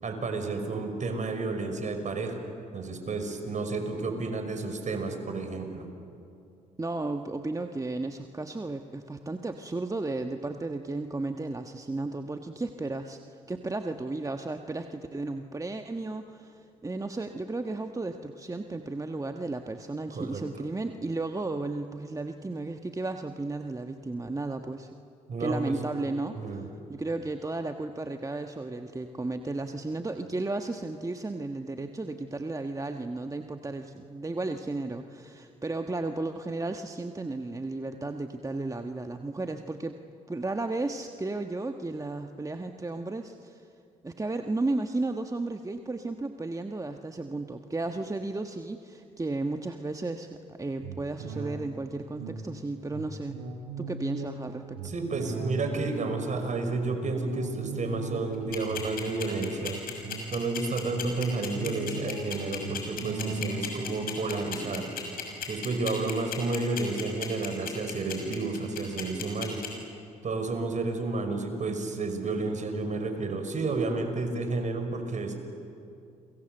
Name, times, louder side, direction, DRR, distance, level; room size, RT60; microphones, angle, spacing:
voice 1, 0.0-2.4 2.7-5.9 20.1-20.4 25.3-25.8 26.4-26.7 54.8-59.8 60.3-64.9 65.5-69.6 70.2-75.3, right 3 dB, 50° right, 6 dB, 5.5 m, -31 dB
voice 2, 6.8-24.9 25.4-40.0 40.3-43.7 44.0-53.4 53.8-54.8, right 2 dB, 20° right, 6 dB, 1.4 m, -34 dB
sound 1, 50.8-66.5 67.0-67.1, right 3 dB, 90° right, 4.9 m, -39 dB
sound 2, 58.3-69.7, left 9 dB, 65° left, 6.4 m, -35 dB
30.0 x 23.5 x 7.9 m, 2.5 s
hypercardioid pair, 50°, 16 cm